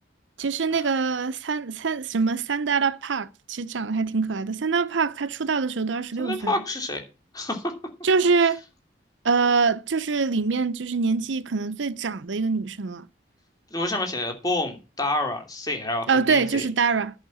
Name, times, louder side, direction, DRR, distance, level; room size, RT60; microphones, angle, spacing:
voice 1, 0.4-6.5 8.0-8.6 9.2-13.1 16.1-17.1, right 5 dB, 85° right, 0.6 m, -24 dB
voice 2, 6.2-7.0 7.3-7.7 13.7-16.6, left 2 dB, 20° left, 2.7 m, -28 dB
10.5 x 5.8 x 8.3 m
head